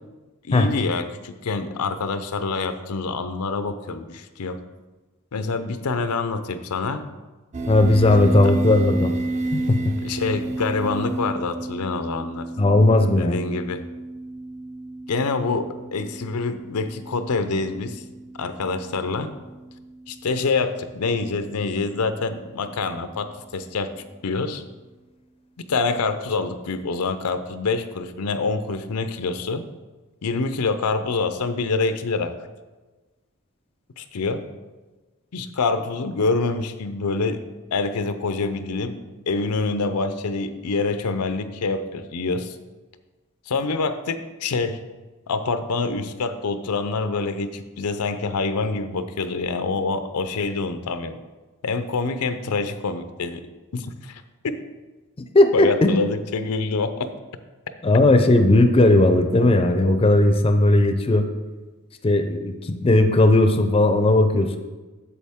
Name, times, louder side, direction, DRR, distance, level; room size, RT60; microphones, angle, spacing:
voice 1, 0.4-4.6 5.3-7.0 8.2-8.5 10.0-12.8 13.2-13.8 15.1-18.0 18.4-19.3 20.1-23.9 24.2-24.6 25.7-29.6 30.2-32.3 34.0-34.4 35.3-37.4 37.7-42.6 43.5-44.8 45.3-51.2 51.6-53.4 53.7-54.6 55.5-57.1, left 4 dB, 90° left, 10 dB, 0.6 m, -26 dB
sound 1, 7.5-22.6, right 2 dB, 30° right, 0.6 m, -32 dB
voice 2, 7.7-9.1 9.5-9.9 12.6-13.4 55.3-56.0 57.8-61.3 62.0-64.6, left 2 dB, 25° left, 7 dB, 0.5 m, -17 dB
8.5 x 6.9 x 3.6 m, 1.2 s
head